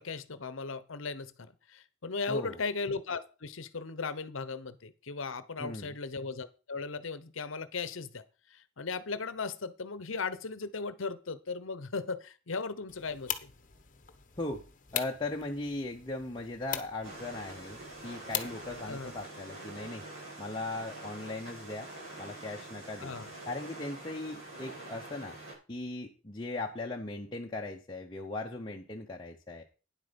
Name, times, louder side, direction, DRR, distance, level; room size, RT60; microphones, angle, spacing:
voice 1, 0.0-8.2 8.5-13.5 18.9-19.1 23.0-23.3, left 4 dB, 70° left, 15 dB, 0.9 m, -37 dB
voice 2, 2.3-2.6 5.6-6.0 14.4-14.6 14.9-20.0 20.4-21.9 22.2-23.1 23.5-25.4 25.7-29.6, left 2 dB, 25° left, -1 dB, 0.9 m, -38 dB
sound 1, 12.9-19.3, left 10 dB, 40° left, 1.1 m, -41 dB
sound 2, 17.0-25.5, right 2 dB, 65° right, 6.6 m, -46 dB
9.9 x 8.1 x 5.2 m, 0.34 s
head